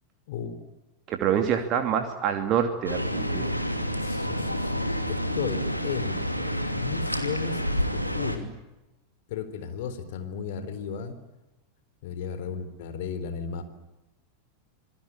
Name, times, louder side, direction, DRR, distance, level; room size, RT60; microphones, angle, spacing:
voice 1, 0.3-0.6 4.0-8.5 9.3-11.2 12.0-13.6, left 7 dB, 50° left, 10 dB, 4.0 m, -35 dB
voice 2, 1.1-3.5, right 8 dB, 35° right, 5 dB, 2.7 m, -26 dB
sound 1, 2.9-8.4, equal, 90° left, 2.8 m, -29 dB
27.0 x 21.0 x 10.0 m, 1.0 s
figure-of-eight pair, 90°, 0 cm